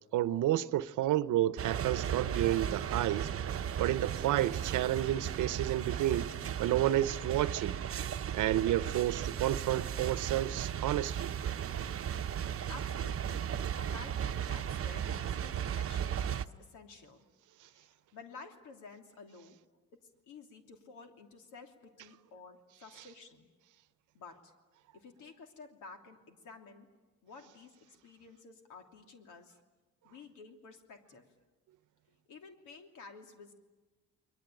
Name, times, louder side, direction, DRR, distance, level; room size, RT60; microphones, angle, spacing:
voice 1, 0.1-3.3 3.8-6.3 6.6-7.8 8.3-11.3, right 13 dB, 80° right, 0.9 m, -30 dB
sound 1, 1.6-16.4, right 9 dB, 50° right, 0.8 m, -36 dB
voice 2, 12.7-13.4 13.7-17.2 17.7-19.6 20.3-23.5 24.1-24.5 24.9-26.9 27.2-29.6 30.0-31.3 32.3-33.5, left 4 dB, 85° left, 3.1 m, -52 dB
30.0 x 22.0 x 9.1 m
cardioid pair, 90°, 30 cm